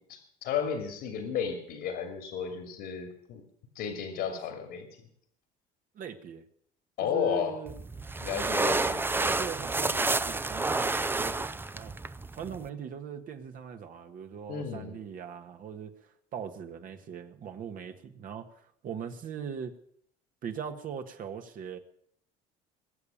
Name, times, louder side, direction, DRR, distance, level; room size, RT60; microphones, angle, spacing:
voice 1, 0.4-3.4 3.7-4.9 7.0-7.6 8.2-9.0 14.5-15.0, left 7 dB, 75° left, 5 dB, 2.7 m, -33 dB
voice 2, 5.9-6.4 7.0-7.7 8.3-11.9 12.3-15.9 16.3-19.7 20.4-21.8, right 7 dB, 55° right, 6 dB, 1.6 m, -40 dB
sound 1, 7.7-12.7, right 3 dB, 10° right, 0.6 m, -30 dB
21.0 x 7.1 x 8.7 m, 0.67 s
supercardioid pair, 100°, 17 cm